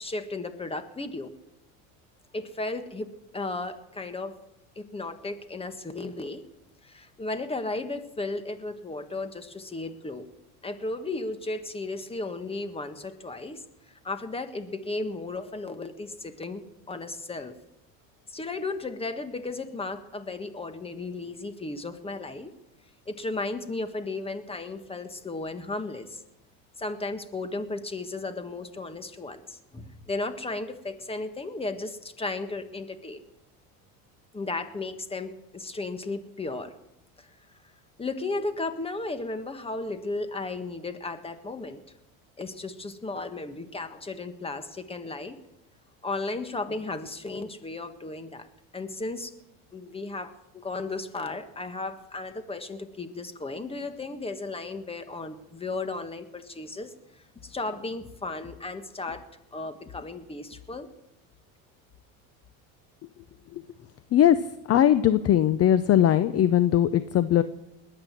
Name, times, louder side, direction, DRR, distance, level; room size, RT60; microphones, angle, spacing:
voice 1, 0.0-1.3 2.3-4.4 4.8-6.4 6.8-10.3 10.6-13.6 14.0-17.5 18.3-22.5 23.1-26.2 26.8-33.2 34.3-36.7 37.2-37.3 38.0-41.8 42.4-45.4 46.0-48.5 48.7-49.3 49.7-56.9 57.4-59.2 59.5-60.9, left 3 dB, 15° left, 9 dB, 1.6 m, -35 dB
voice 2, 64.1-64.4 64.7-67.4, left 11 dB, 35° left, 13 dB, 0.7 m, -20 dB
20.5 x 9.0 x 7.5 m, 0.90 s
supercardioid pair, 115°, 41 cm